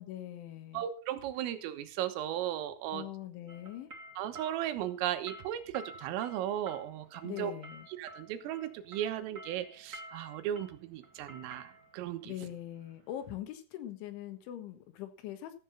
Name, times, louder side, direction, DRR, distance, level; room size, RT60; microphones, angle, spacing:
voice 1, 0.0-0.8 2.9-3.9 7.2-7.9 12.3-15.6, left 12 dB, 75° left, 8 dB, 3.7 m, -42 dB
voice 2, 0.7-3.1 4.2-7.5 7.9-12.3, right 11 dB, 85° right, 9 dB, 3.8 m, -36 dB
sound 1, 3.5-13.3, right 2 dB, 60° right, 0.8 m, -51 dB
14.5 x 7.9 x 5.6 m, 0.37 s
omnidirectional pair, 5.9 m